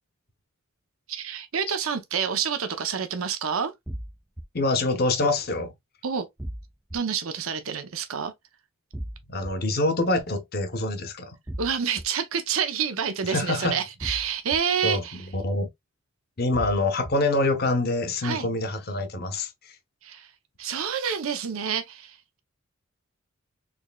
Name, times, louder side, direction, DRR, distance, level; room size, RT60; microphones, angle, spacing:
voice 1, 1.1-3.7 6.0-6.3 6.9-8.3 11.6-15.3 18.2-18.5 20.0-20.3 20.6-22.4, right 7 dB, 80° right, 0.6 m, -28 dB
sound 1, 3.9-4.4 6.4-7.0 8.9-9.5 11.5-12.0 14.0-14.6 16.5-17.1, right 1 dB, 10° right, 0.3 m, -35 dB
voice 2, 4.5-5.7 9.3-11.4 13.3-13.8 14.8-15.7 16.4-19.7, left 2 dB, 45° left, 0.8 m, -25 dB
4.1 x 3.1 x 2.2 m
head